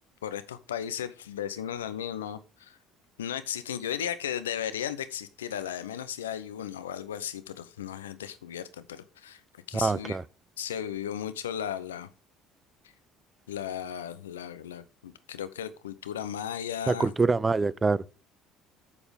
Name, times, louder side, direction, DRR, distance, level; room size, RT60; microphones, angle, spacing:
voice 1, 0.2-2.8 3.2-9.4 9.7-10.2 10.6-12.1 13.5-17.1, left 9 dB, 85° left, 0.8 m, -35 dB
voice 2, 9.7-10.2 16.9-18.1, right 4 dB, 25° right, 0.5 m, -25 dB
8.4 x 7.2 x 5.2 m
hypercardioid pair, 60°, 0 cm